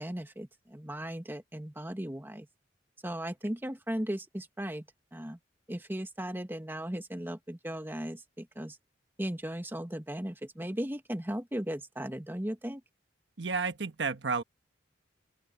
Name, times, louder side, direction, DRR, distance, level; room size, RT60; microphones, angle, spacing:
voice 1, 0.0-2.5 3.0-5.4 5.7-8.8 9.2-12.8, equal, 10° right, 1.7 m, -37 dB
voice 2, 13.4-14.4, right 4 dB, 70° right, 1.3 m, -31 dB
open air
head